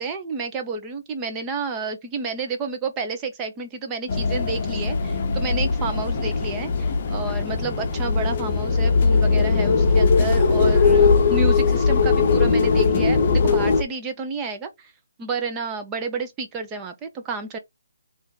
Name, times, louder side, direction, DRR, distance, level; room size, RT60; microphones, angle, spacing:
voice 1, 0.0-14.9 15.2-17.6, right 4 dB, 15° right, 0.7 m, -30 dB
sound 1, 4.1-13.8, left 4 dB, 40° left, 0.8 m, -20 dB
3.9 x 2.5 x 3.8 m
hypercardioid pair, 155°, 0 cm